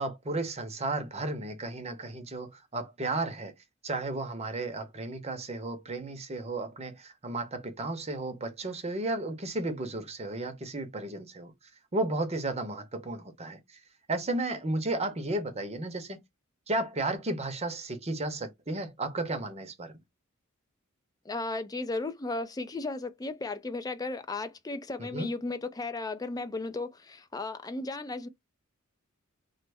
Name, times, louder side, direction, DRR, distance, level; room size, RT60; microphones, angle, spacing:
voice 1, 0.0-3.5 3.8-11.5 11.9-13.6 14.1-16.2 16.7-20.0 25.0-25.3, right 2 dB, 30° right, 0.8 m, -33 dB
voice 2, 21.3-28.3, left 3 dB, 20° left, 0.4 m, -35 dB
3.1 x 2.1 x 3.4 m
head